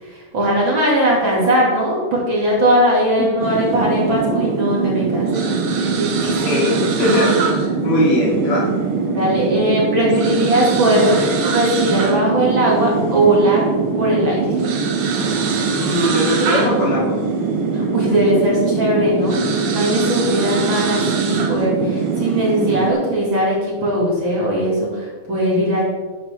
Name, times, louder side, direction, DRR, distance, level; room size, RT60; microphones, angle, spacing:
voice 1, 0.0-5.5 5.9-6.9 9.1-11.2 11.5-13.7 13.9-14.5 17.7-19.4 19.7-25.8, right 1 dB, 40° right, -4 dB, 3.0 m, -19 dB
sound 1, 3.4-22.9, right 4 dB, 60° right, 1.5 m, -21 dB
voice 2, 6.5-8.7 15.8-17.1, left 1 dB, 75° left, -4 dB, 4.4 m, -20 dB
12.0 x 9.1 x 3.7 m, 1.5 s
omnidirectional pair, 3.7 m